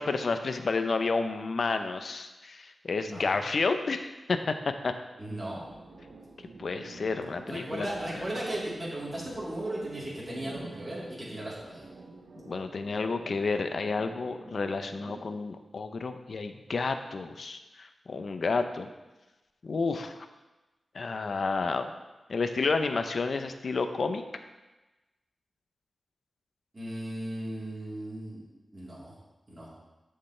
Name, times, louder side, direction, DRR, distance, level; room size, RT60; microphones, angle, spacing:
voice 1, 0.0-4.9 6.6-7.9 12.5-18.9 19.6-20.3 20.9-21.9 22.3-24.2, left 4 dB, 60° left, 8 dB, 0.7 m, -30 dB
voice 2, 5.2-5.6 7.5-11.9 26.7-28.4 28.7-29.2 29.5-29.7, right 1 dB, 30° right, -8 dB, 3.6 m, -36 dB
sound 1, 5.5-15.2, right 3 dB, 70° right, 0.9 m, -49 dB
13.0 x 6.7 x 3.3 m, 1.1 s
wide cardioid pair, 105°, 0 cm